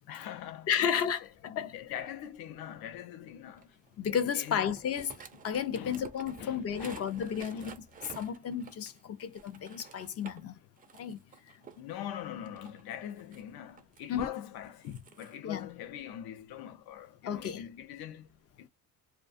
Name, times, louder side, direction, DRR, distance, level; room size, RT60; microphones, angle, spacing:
voice 1, 0.1-3.8 4.0-4.8 5.7-6.1 6.4-7.1 7.5-7.7 11.8-18.7, left 10 dB, 75° left, 0.7 m, -43 dB
voice 2, 0.7-1.7 4.0-5.1 5.4-7.8 8.2-8.9 9.2-10.5 11.0-11.2 14.1-14.3 14.8-15.0 15.4-15.7 17.2-17.6, left 8 dB, 40° left, 0.4 m, -32 dB
sound 1, 3.6-10.4 10.8-11.8 12.4-14.0 14.6-15.3, right 6 dB, 25° right, 0.3 m, -51 dB
2.4 x 2.3 x 2.5 m
cardioid pair, 160°, 38 cm